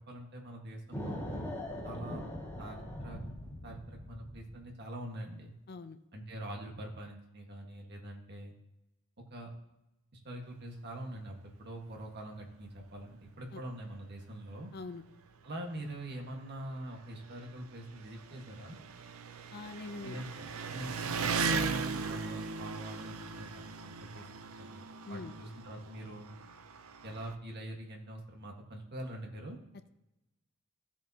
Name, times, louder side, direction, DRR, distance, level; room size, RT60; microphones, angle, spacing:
voice 1, 0.1-1.2 1.8-2.2 2.6-3.2 3.6-5.5 6.1-8.5 9.3-9.5 10.2-14.7 15.4-18.8 20.0-23.5 23.8-24.3 24.6-26.3 27.0-29.6, right 1 dB, 50° right, 1 dB, 1.6 m, -44 dB
sound 1, 0.9-4.6, left 1 dB, 10° left, 2.1 m, -41 dB
voice 2, 5.7-6.0 13.5-13.6 14.7-15.0 19.5-20.2 25.1-25.3, left 3 dB, 50° left, 11 dB, 0.5 m, -43 dB
Engine, 12.8-12.9 13.3-13.4 14.3-14.4 14.6-27.3, right 4 dB, 75° right, 0.7 m, -39 dB
15.5 x 7.3 x 2.9 m, 0.94 s
head